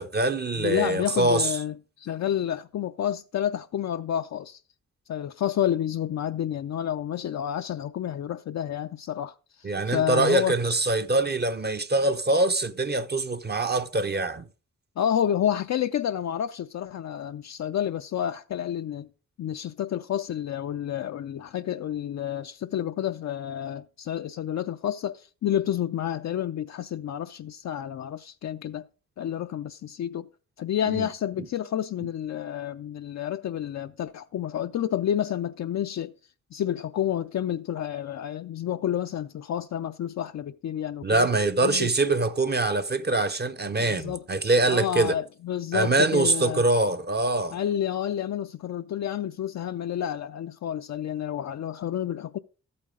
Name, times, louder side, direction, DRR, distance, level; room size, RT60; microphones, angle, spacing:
voice 1, 0.0-1.5 9.6-14.4 30.9-31.1 41.0-45.1 45.7-47.6, right 2 dB, 35° right, 0.7 m, -24 dB
voice 2, 0.5-4.6 5.1-10.6 15.0-19.1 19.4-28.9 29.2-30.3 30.6-36.1 36.5-41.3 41.6-41.9 43.8-44.2 44.7-46.7 47.5-52.4, left 10 dB, 70° left, 0.4 m, -29 dB
13.5 x 8.6 x 3.7 m
cardioid pair, 80°, 29 cm